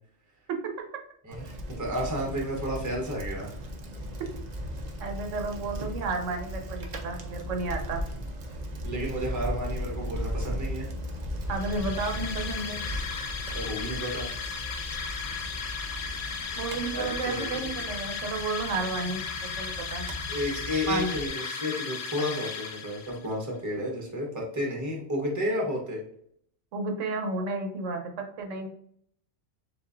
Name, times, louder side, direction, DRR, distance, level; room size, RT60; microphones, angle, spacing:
voice 1, 1.2-3.5 8.8-10.9 13.5-14.3 16.5-16.6 16.9-17.8 20.3-26.0, equal, 15° right, -1 dB, 0.9 m, -32 dB
Bicycle, 1.3-21.3, equal, 45° right, 0.6 m, -37 dB
voice 2, 5.0-8.0 11.5-12.8 16.6-20.1 20.9-21.1 26.7-28.1 28.4-28.7, right 3 dB, 75° right, 4 dB, 1.1 m, -32 dB
sound 1, 11.5-23.3, left 6 dB, 90° left, 1.0 m, -36 dB
7.0 x 2.5 x 2.5 m, 0.65 s
omnidirectional pair, 1.3 m